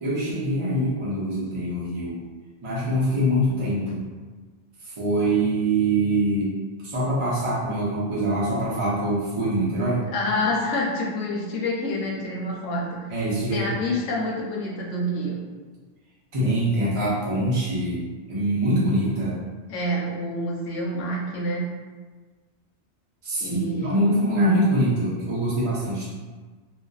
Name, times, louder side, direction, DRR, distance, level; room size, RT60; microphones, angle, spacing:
voice 1, 0.0-2.2 2.6-4.0 4.8-6.5 6.8-10.0 13.1-13.6 16.3-18.0 18.3-19.4 23.2-26.1, right 1 dB, 40° right, -8 dB, 0.5 m, -24 dB
voice 2, 10.1-13.1 13.5-15.4 19.7-21.6 23.4-24.1, left 1 dB, 90° left, -2 dB, 0.9 m, -27 dB
2.5 x 2.1 x 2.3 m, 1.4 s
omnidirectional pair, 1.2 m